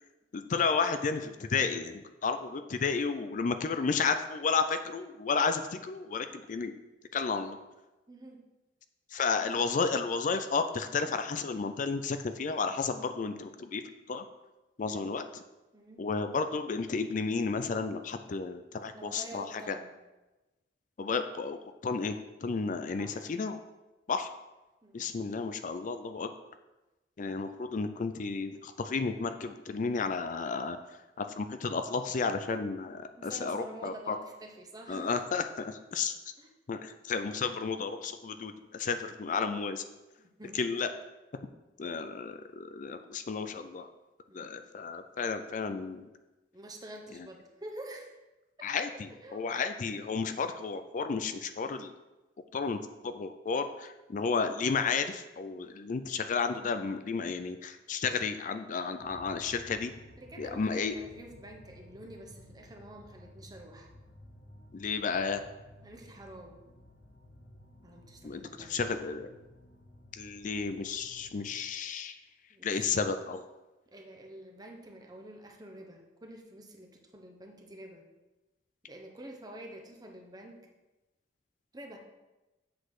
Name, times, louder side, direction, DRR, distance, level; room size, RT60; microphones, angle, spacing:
voice 1, 0.3-6.7 7.1-7.6 9.1-13.8 14.1-14.2 14.8-15.4 16.0-19.8 21.0-21.6 21.8-23.6 24.1-24.3 24.9-26.3 27.2-30.8 31.2-34.2 34.9-36.2 36.7-39.8 40.5-40.9 41.8-43.9 44.3-46.1 48.6-51.9 52.5-59.9 60.4-60.9 64.7-65.4 68.2-69.3 70.1-72.2 72.6-73.4, left 5 dB, 45° left, 9 dB, 0.4 m, -32 dB
voice 2, 8.1-8.5 14.8-15.1 15.7-16.1 18.8-19.9 23.0-23.2 24.8-25.0 33.2-35.2 36.4-36.5 40.2-40.7 44.3-44.5 46.5-48.1 49.2-49.5 60.2-63.9 65.8-66.6 67.8-68.8 72.5-73.0 73.9-78.0 78.8-80.6 81.7-82.0, right 1 dB, 20° right, 2 dB, 1.0 m, -48 dB
sound 1, 59.0-71.4, left 1 dB, 65° left, 0.9 m, -54 dB
7.5 x 4.1 x 6.4 m, 1.1 s
head